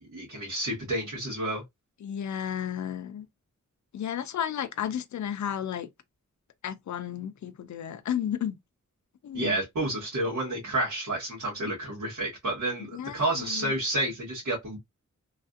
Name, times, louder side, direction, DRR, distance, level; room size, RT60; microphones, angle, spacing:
voice 1, 0.1-1.6 9.3-14.8, right 1 dB, 70° right, 1.6 m, -30 dB
voice 2, 2.0-3.3 3.9-5.9 6.6-8.6 9.2-9.6 12.8-13.7, left 9 dB, 65° left, 0.5 m, -33 dB
3.2 x 2.5 x 2.5 m
wide cardioid pair, 75°, 31 cm